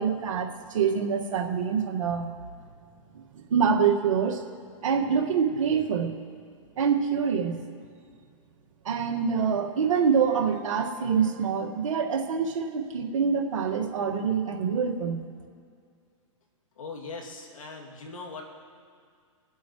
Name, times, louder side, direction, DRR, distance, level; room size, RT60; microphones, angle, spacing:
voice 1, 0.0-2.3 3.1-3.2 3.5-4.4 4.8-6.1 6.8-7.6 8.8-15.2, right 6 dB, 75° right, 1 dB, 1.7 m, -25 dB
voice 2, 16.8-18.5, left 3 dB, 85° left, 1 dB, 2.4 m, -40 dB
23.0 x 8.3 x 3.1 m, 2.2 s
hypercardioid pair, 140°, 17 cm